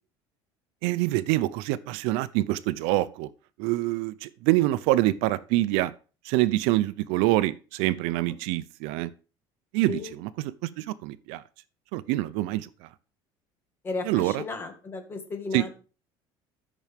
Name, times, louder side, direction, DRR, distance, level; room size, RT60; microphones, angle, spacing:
voice 1, 0.8-3.3 3.6-5.9 6.3-9.1 9.7-11.4 11.9-12.7 14.0-14.4 15.5-15.7, right 17 dB, 80° right, 0.6 m, -26 dB
voice 2, 13.8-15.7, left 4 dB, 20° left, 1.8 m, -34 dB
13.5 x 6.1 x 3.5 m
cardioid pair, 165°, 10 cm